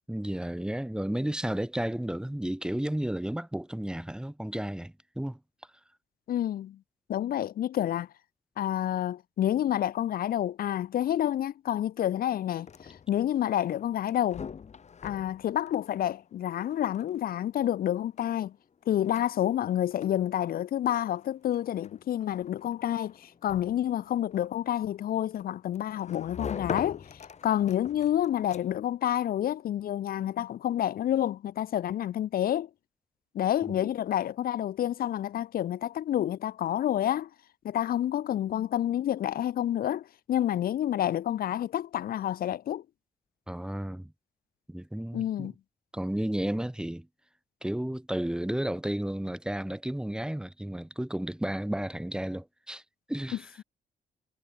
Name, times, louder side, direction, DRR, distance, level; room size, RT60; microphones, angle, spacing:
voice 1, 0.1-5.4 33.7-33.9 43.5-44.1 44.7-45.5 45.9-47.1 47.6-52.8 53.1-53.5, right 1 dB, 5° right, 4.2 m, -32 dB
voice 2, 6.3-6.8 7.1-8.1 8.6-14.5 15.0-18.5 18.9-27.1 27.4-32.7 33.3-37.3 37.6-42.8 45.1-45.5, left 11 dB, 85° left, 3.2 m, -29 dB
sound 1, 12.4-29.0, left 6 dB, 50° left, 5.3 m, -45 dB
cardioid pair, 100°, 15 cm